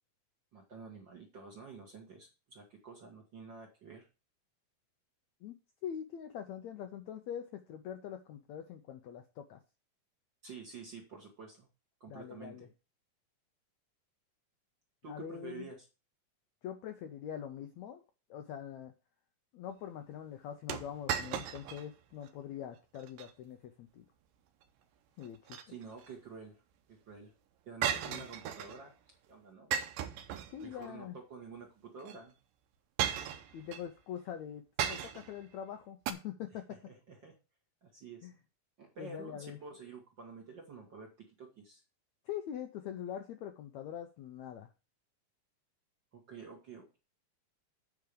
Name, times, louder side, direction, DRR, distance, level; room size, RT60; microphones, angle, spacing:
voice 1, 0.5-4.1 10.4-11.7 12.0-12.6 15.0-15.9 25.7-26.6 26.9-27.3 27.7-28.9 29.3-29.7 30.6-32.3 36.7-37.3 37.8-38.3 38.8-41.1 41.4-41.8 46.1-47.0, right 4 dB, 45° right, 0 dB, 1.7 m, -49 dB
voice 2, 5.4-9.6 12.1-12.7 15.1-15.7 16.6-18.0 18.3-18.9 19.5-24.1 25.2-25.6 27.9-28.3 30.5-31.2 33.5-34.6 34.9-36.8 38.2-38.3 39.0-39.6 42.3-44.7, left 9 dB, 75° left, 6 dB, 1.7 m, -43 dB
sound 1, 20.7-21.9 22.2-22.3 23.0-23.3 25.2-26.1 27.8-28.8 29.7-30.9 32.0-32.2 33.0-33.8 34.8-35.4 36.1-36.2, right 9 dB, 75° right, 2.4 m, -36 dB
8.5 x 4.7 x 6.8 m, 0.30 s
omnidirectional pair, 4.1 m